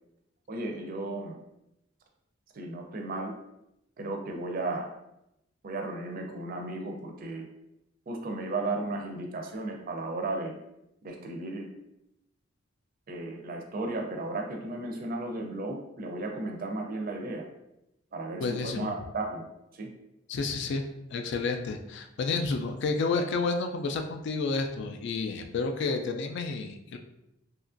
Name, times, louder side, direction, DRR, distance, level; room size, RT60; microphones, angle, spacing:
voice 1, 0.5-1.4 2.5-3.3 4.0-4.9 5.6-7.5 8.1-10.6 11.0-11.7 13.1-17.5 18.1-19.4 19.7-19.9, right 2 dB, 45° right, 2 dB, 0.4 m, -34 dB
voice 2, 18.4-18.9 20.3-27.0, left 4 dB, 60° left, 5 dB, 0.3 m, -30 dB
2.8 x 2.4 x 2.4 m, 0.85 s
head